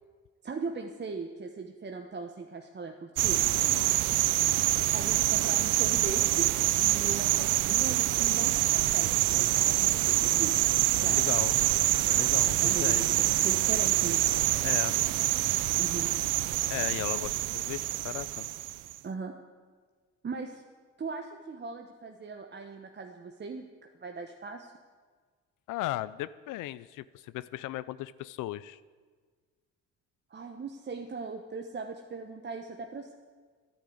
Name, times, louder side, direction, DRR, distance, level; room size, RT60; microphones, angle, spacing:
voice 1, 0.4-3.4 4.9-6.5 6.8-11.2 12.6-14.2 15.7-16.1 19.0-19.3 20.2-20.6 21.0-23.7 24.0-24.7 30.3-33.2, right 4 dB, 35° right, 4 dB, 1.1 m, -39 dB
sound 1, 3.2-18.9, right 16 dB, 85° right, 0.5 m, -26 dB
voice 2, 11.1-11.6 12.0-13.1 14.6-15.0 16.7-18.5 25.7-28.8, left 15 dB, 90° left, 16 dB, 0.5 m, -36 dB
12.0 x 10.5 x 9.4 m, 1.5 s
cardioid pair, 90°, 30 cm